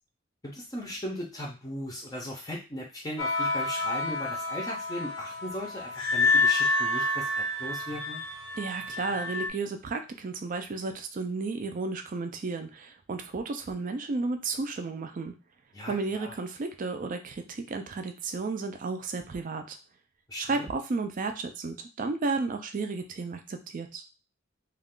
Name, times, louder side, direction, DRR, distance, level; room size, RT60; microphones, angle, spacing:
voice 1, 0.4-8.2 15.7-16.3 20.3-20.7, equal, 20° left, -1 dB, 0.5 m, -38 dB
sound 1, 3.2-9.5, left 3 dB, 75° left, 0.5 m, -28 dB
voice 2, 8.6-15.3 15.9-19.8 20.4-24.0, right 3 dB, 45° right, 6 dB, 0.4 m, -33 dB
2.4 x 2.3 x 3.6 m, 0.30 s
head